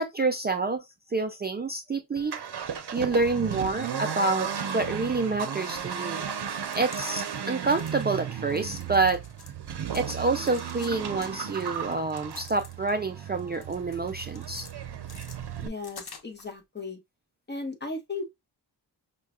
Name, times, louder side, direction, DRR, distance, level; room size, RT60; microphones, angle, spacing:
voice 1, 0.0-2.4 2.9-9.2 9.9-14.6, right 3 dB, 25° right, 0.4 m, -28 dB
Accelerating revving vroom, 2.2-15.7, right 8 dB, 70° right, 0.6 m, -35 dB
sound 1, 6.6-7.3 7.6-8.1 8.5-9.6 9.9-10.9 11.2-13.0 13.4-14.7 15.1-16.5, left 4 dB, 65° left, 0.9 m, -48 dB
voice 2, 15.6-17.0 17.5-18.3, left 3 dB, 25° left, 0.9 m, -36 dB
5.4 x 2.2 x 2.3 m
wide cardioid pair, 90°, 41 cm